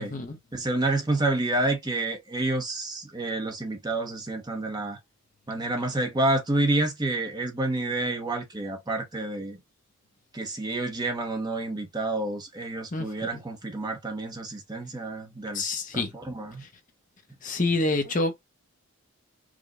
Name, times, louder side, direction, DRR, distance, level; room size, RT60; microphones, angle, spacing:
voice 1, 0.0-0.4 12.9-13.4 15.5-16.1 16.6-16.7 17.4-18.3, left 2 dB, 35° left, 0.9 m, -28 dB
voice 2, 0.5-5.0 5.5-9.6 10.3-16.6, right 2 dB, 20° right, 0.9 m, -29 dB
5.0 x 2.4 x 3.7 m
head